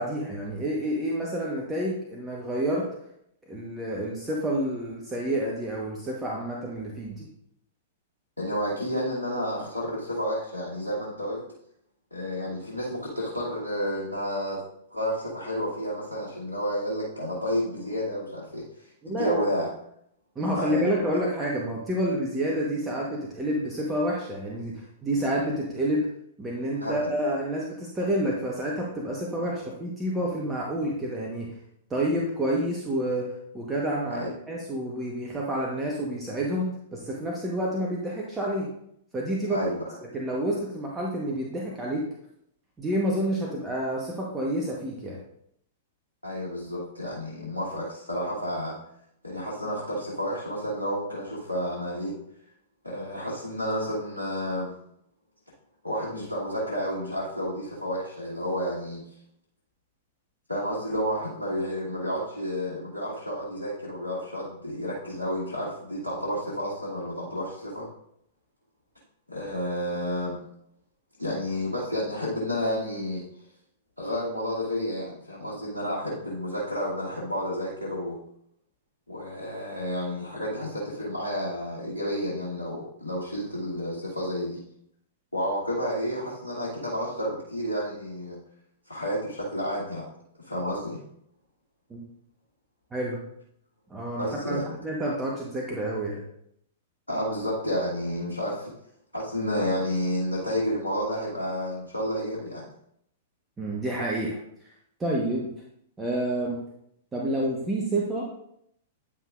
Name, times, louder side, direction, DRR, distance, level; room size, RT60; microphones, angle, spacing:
voice 1, 0.0-2.9 3.5-7.3 19.0-19.4 20.3-26.1 26.4-31.5 31.9-38.7 39.1-39.6 40.0-42.1 42.8-45.2 91.9-92.1 92.9-93.2 93.9-96.2 103.6-104.4 105.0-105.5 106.0-106.6 107.1-108.3, right 1 dB, 15° right, -3 dB, 1.1 m, -29 dB
voice 2, 8.4-11.4 12.1-14.6 14.9-19.7 20.5-21.0 26.7-27.1 34.1-34.3 39.5-39.8 46.2-48.7 49.2-52.1 52.8-54.7 55.8-59.0 60.5-67.9 69.3-70.4 71.2-73.2 74.0-78.2 79.1-84.6 85.3-88.4 88.9-90.1 90.4-91.0 94.2-94.7 97.1-98.7 99.1-102.7, equal, 85° left, -7 dB, 1.5 m, -30 dB
9.6 x 5.5 x 2.4 m, 0.73 s
figure-of-eight pair, 105°, 0 cm